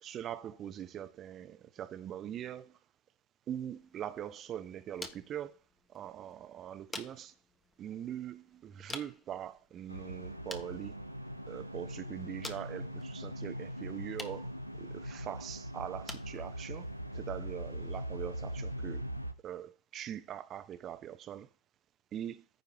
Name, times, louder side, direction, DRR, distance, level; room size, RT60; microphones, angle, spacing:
voice 1, 0.0-2.8 3.5-5.6 5.9-7.3 7.8-11.0 11.5-19.0 19.4-21.5 22.1-22.5, right 10 dB, 30° right, 1.0 m, -42 dB
sound 1, 3.8-18.8, left 3 dB, 15° left, 1.3 m, -52 dB
sound 2, 9.9-19.3, equal, 90° right, 0.7 m, -41 dB
15.0 x 5.4 x 3.1 m
figure-of-eight pair, 90°, 0 cm